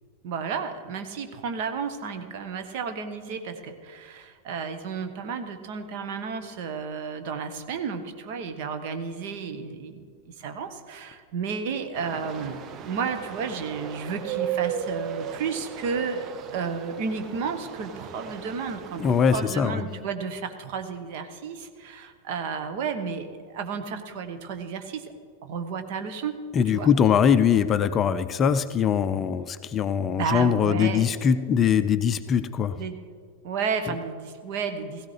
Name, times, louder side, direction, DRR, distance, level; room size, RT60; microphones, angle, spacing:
voice 1, 0.2-16.2 16.5-25.1 25.4-26.3 26.7-26.9 30.0-31.1 32.8-33.0 33.4-35.1, right 5 dB, 50° right, 7 dB, 1.0 m, -32 dB
sound 1, 11.9-19.5, right 9 dB, 30° right, 0.7 m, -36 dB
voice 2, 19.0-19.8 26.5-32.8, left 7 dB, 25° left, 11 dB, 0.4 m, -22 dB
17.0 x 16.0 x 3.3 m, 2.1 s
figure-of-eight pair, 90°, 0 cm